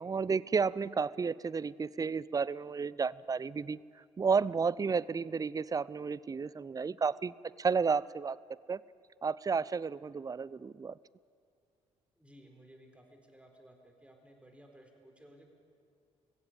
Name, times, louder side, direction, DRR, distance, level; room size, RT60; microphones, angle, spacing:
voice 1, 0.0-3.8 4.2-8.4 8.7-8.8 9.2-10.9, right 5 dB, 25° right, 21 dB, 0.5 m, -32 dB
voice 2, 12.2-15.5, right 1 dB, 5° right, 3 dB, 4.1 m, -57 dB
19.5 x 16.0 x 8.9 m, 2.4 s
hypercardioid pair, 45°, 16 cm